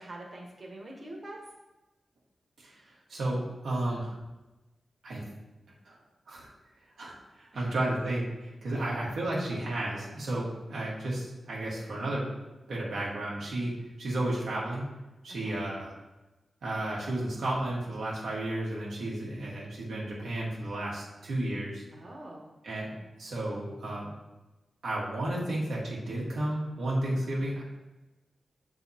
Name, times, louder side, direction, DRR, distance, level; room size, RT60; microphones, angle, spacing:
voice 1, 0.0-1.4 7.5-7.8 8.7-8.9 15.4-15.6 21.9-22.5, right 1 dB, 40° right, -1 dB, 1.3 m, -45 dB
voice 2, 3.1-4.2 5.0-5.2 5.8-6.0 6.3-6.5 7.0-12.3 12.7-13.7 14.0-14.8 15.2-15.9 16.6-21.8 22.6-22.9 23.2-24.1 24.8-27.6, right 1 dB, 90° right, -5 dB, 1.7 m, -32 dB
6.9 x 4.0 x 4.2 m, 1.1 s
cardioid pair, 75°, 0 cm